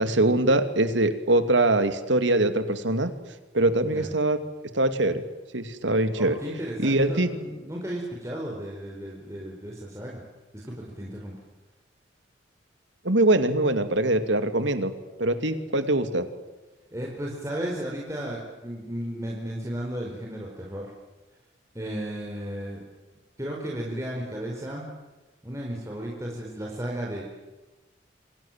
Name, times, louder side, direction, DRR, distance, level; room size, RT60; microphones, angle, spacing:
voice 1, 0.0-3.1 3.5-4.4 4.7-5.2 5.5-6.4 6.8-7.3 13.0-14.9 15.2-16.3, right 2 dB, 80° right, 9 dB, 2.7 m, -23 dB
voice 2, 6.1-10.2 10.5-11.3 16.9-20.9 21.7-22.8 23.4-24.9 25.4-27.2, right 1 dB, 15° right, -2 dB, 4.8 m, -34 dB
28.0 x 25.5 x 7.6 m, 1.2 s
head